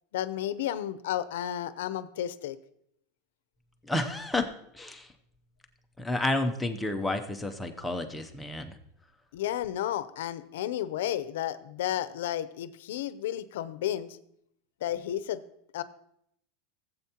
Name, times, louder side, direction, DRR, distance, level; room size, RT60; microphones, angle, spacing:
voice 1, 0.1-2.6 9.3-14.2 14.8-15.4 15.7-15.8, left 11 dB, 80° left, 14 dB, 0.6 m, -32 dB
voice 2, 3.8-4.5 4.7-5.1 6.0-8.8, left 2 dB, 5° left, 5 dB, 0.6 m, -30 dB
16.0 x 7.9 x 2.9 m, 0.73 s
supercardioid pair, 175°, 0 cm